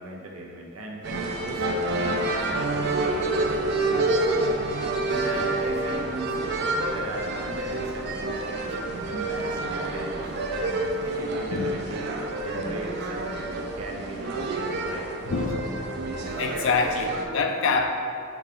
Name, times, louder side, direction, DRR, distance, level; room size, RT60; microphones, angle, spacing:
voice 1, 0.0-4.5 5.0-8.8 9.1-15.1 15.5-15.6, right 2 dB, 90° right, 0 dB, 0.8 m, -38 dB
sound 1, 1.0-17.3, right 2 dB, 50° right, 0.5 m, -28 dB
voice 2, 15.2-15.8 16.4-17.9, left 4 dB, 65° left, 5 dB, 0.5 m, -25 dB
7.1 x 3.5 x 3.7 m, 2.4 s
head